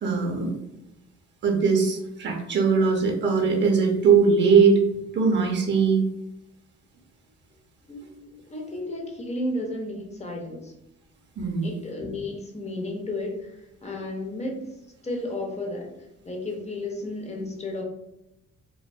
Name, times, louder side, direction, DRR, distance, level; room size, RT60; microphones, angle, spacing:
voice 1, 0.0-0.5 1.4-4.8 5.1-6.0 11.4-11.7, right 5 dB, 40° right, 2 dB, 0.7 m, -20 dB
voice 2, 7.9-10.7 11.6-14.6 15.0-15.9 16.2-17.8, left 1 dB, 20° left, 0 dB, 0.6 m, -33 dB
2.4 x 2.2 x 2.3 m, 0.87 s
cardioid pair, 90°, 30 cm